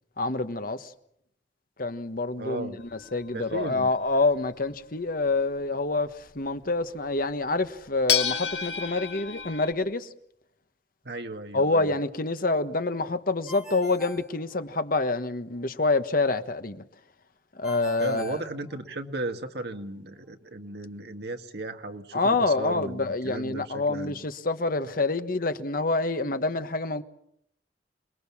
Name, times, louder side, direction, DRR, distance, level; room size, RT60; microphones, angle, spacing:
voice 1, 0.2-0.9 1.8-10.1 11.5-16.8 17.5-18.4 22.1-27.0, left 3 dB, 55° left, 1.4 m, -27 dB
voice 2, 2.4-2.8 3.3-3.9 11.0-11.9 18.0-24.2, right 2 dB, 65° right, 2.0 m, -35 dB
sound 1, 2.9-4.5 7.2-7.3 8.1-9.7, left 8 dB, 90° left, 2.6 m, -29 dB
Ringtone, 13.5-15.1 17.6-19.3, equal, ahead, 5.8 m, -45 dB
28.0 x 21.0 x 7.2 m
head